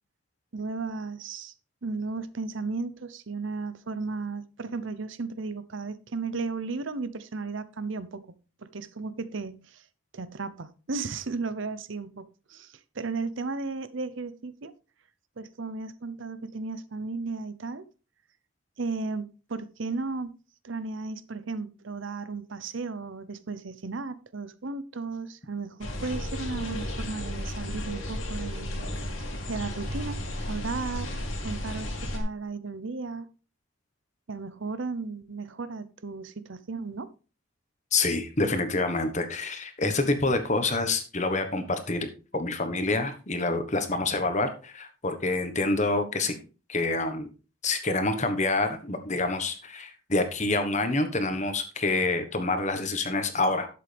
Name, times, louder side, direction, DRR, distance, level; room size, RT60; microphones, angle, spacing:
voice 1, 0.5-1.5 1.8-8.3 8.6-9.8 10.1-14.7 15.4-17.8 18.8-20.3 20.6-28.9 29.5-30.2 30.4-31.1 31.4-33.3 34.3-37.1, right 4 dB, 65° right, 0.7 m, -35 dB
sound 1, 25.8-32.2, left 1 dB, 70° left, 2.5 m, -33 dB
voice 2, 37.9-42.1 42.3-46.3 46.7-47.3 47.6-53.7, left 2 dB, 35° left, 1.3 m, -27 dB
11.5 x 7.6 x 3.4 m
head